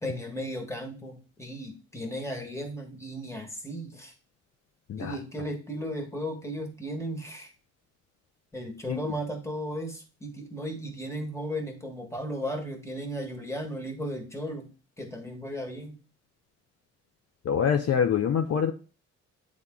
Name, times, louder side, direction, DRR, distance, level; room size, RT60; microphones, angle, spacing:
voice 1, 0.0-4.1 5.0-7.5 8.5-14.7 15.0-16.0, equal, 10° left, 4 dB, 1.5 m, -35 dB
voice 2, 17.4-18.7, left 7 dB, 55° left, 5 dB, 0.7 m, -25 dB
8.1 x 3.6 x 3.7 m, 0.35 s
cardioid pair, 90°, 30 cm